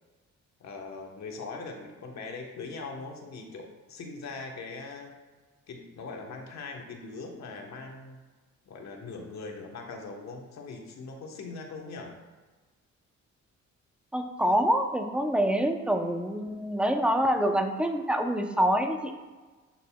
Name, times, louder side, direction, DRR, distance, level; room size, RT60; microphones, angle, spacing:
voice 1, 0.6-5.1 5.7-8.2 8.7-12.2, left 3 dB, 65° left, 2 dB, 1.2 m, -41 dB
voice 2, 14.1-19.1, equal, 5° right, 4 dB, 0.7 m, -26 dB
11.5 x 4.0 x 2.3 m, 1.3 s
cardioid pair, 90°, 30 cm